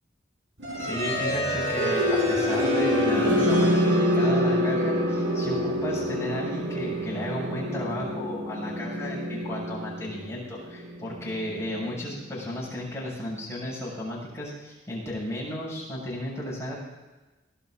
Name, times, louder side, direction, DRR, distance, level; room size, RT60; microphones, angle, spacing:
sound 1, 0.6-12.5, equal, 80° right, 4.5 m, -26 dB
voice 1, 0.8-16.7, left 1 dB, 15° left, -6 dB, 6.4 m, -34 dB
23.0 x 17.5 x 2.6 m, 1.2 s
head